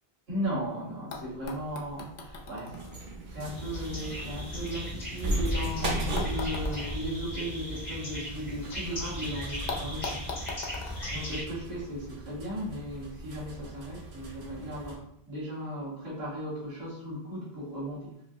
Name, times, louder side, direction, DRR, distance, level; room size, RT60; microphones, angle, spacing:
voice 1, 0.3-2.8 3.3-10.4 11.1-18.2, equal, 75° right, -7 dB, 1.8 m, -36 dB
sound 1, 0.7-0.8 1.1-5.2 5.8-8.8 9.1-9.2 9.7-12.1 13.1-13.2, left 4 dB, 55° left, 0.6 m, -42 dB
sound 2, 1.4-15.0, right 1 dB, 60° right, 0.7 m, -37 dB
sound 3, 3.4-11.4, left 1 dB, 80° left, 1.6 m, -38 dB
4.6 x 2.1 x 2.6 m, 0.68 s
omnidirectional pair, 1.1 m